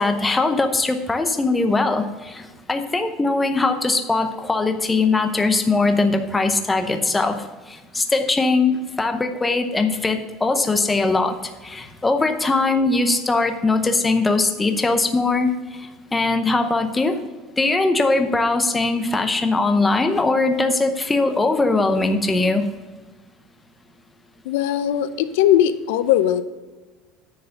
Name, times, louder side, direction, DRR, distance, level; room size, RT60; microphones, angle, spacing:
voice 1, 0.0-15.5 15.8-17.2 17.6-22.7, left 3 dB, 10° left, 6 dB, 0.7 m, -21 dB
voice 2, 24.4-26.4, left 11 dB, 85° left, 13 dB, 0.6 m, -19 dB
10.0 x 4.8 x 6.5 m, 1.3 s
cardioid pair, 170°, 0 cm